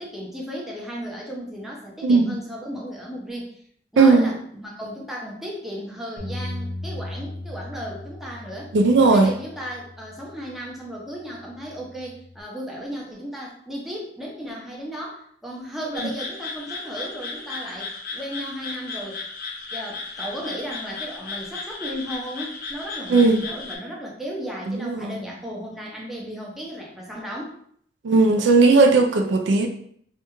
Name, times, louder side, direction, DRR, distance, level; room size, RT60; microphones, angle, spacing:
voice 1, 0.0-3.6 3.9-8.7 9.0-19.2 19.7-27.5, equal, ahead, -3 dB, 0.5 m, -35 dB
voice 2, 2.0-2.4 4.0-4.3 8.7-9.3 23.1-23.4 24.7-25.2 28.0-29.7, right 3 dB, 70° right, 4 dB, 0.4 m, -17 dB
Bass guitar, 6.2-10.6 11.2-12.4, left 1 dB, 20° right, 1.0 m, -37 dB
sound 1, 15.9-23.8, left 4 dB, 50° left, 0.6 m, -35 dB
3.2 x 2.3 x 3.0 m, 0.64 s
head